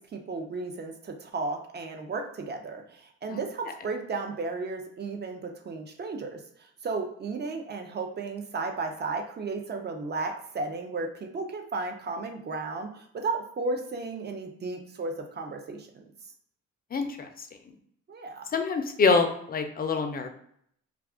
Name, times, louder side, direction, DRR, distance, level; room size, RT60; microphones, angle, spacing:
voice 1, 0.1-16.0 18.1-18.5, right 3 dB, 35° right, 4 dB, 0.6 m, -34 dB
voice 2, 16.9-17.5 18.5-20.3, left 4 dB, 30° left, 6 dB, 0.5 m, -26 dB
2.4 x 2.3 x 3.6 m, 0.68 s
cardioid pair, 90°, 30 cm